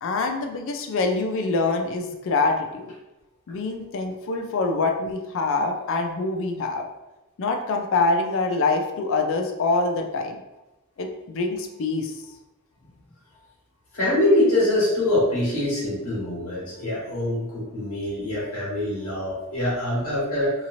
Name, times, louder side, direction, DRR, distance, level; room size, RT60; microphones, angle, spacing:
voice 1, 0.0-2.9 3.5-6.9 7.4-10.4 11.0-12.1, left 3 dB, 60° left, 4 dB, 0.4 m, -25 dB
voice 2, 13.9-20.5, left 1 dB, 85° left, -7 dB, 1.4 m, -24 dB
2.8 x 2.8 x 2.6 m, 0.98 s
head